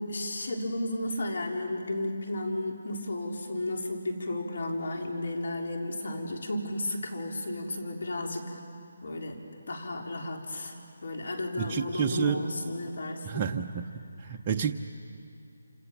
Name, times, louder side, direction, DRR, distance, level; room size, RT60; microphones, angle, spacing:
voice 1, 0.0-8.6 9.0-9.4 9.7-10.7 11.0-13.5, left 1 dB, 65° left, 2 dB, 3.8 m, -33 dB
voice 2, 11.6-12.4 13.2-13.8 14.2-14.7, right 7 dB, 20° right, 1 dB, 0.7 m, -29 dB
27.5 x 27.0 x 7.2 m, 2.4 s
hypercardioid pair, 170°, 0 cm